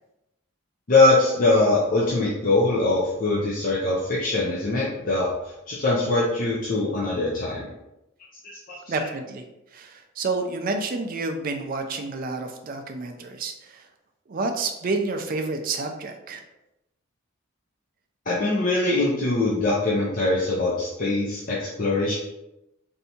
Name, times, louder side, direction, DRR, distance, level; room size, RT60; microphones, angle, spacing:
voice 1, 0.9-5.3 5.7-7.7 9.0-9.1 18.3-22.1, left 2 dB, 40° left, -6 dB, 0.5 m, -22 dB
voice 2, 8.9-9.4 9.7-13.9 14.3-16.4, right 3 dB, 40° right, 5 dB, 0.3 m, -29 dB
3.3 x 2.7 x 2.8 m, 0.92 s
head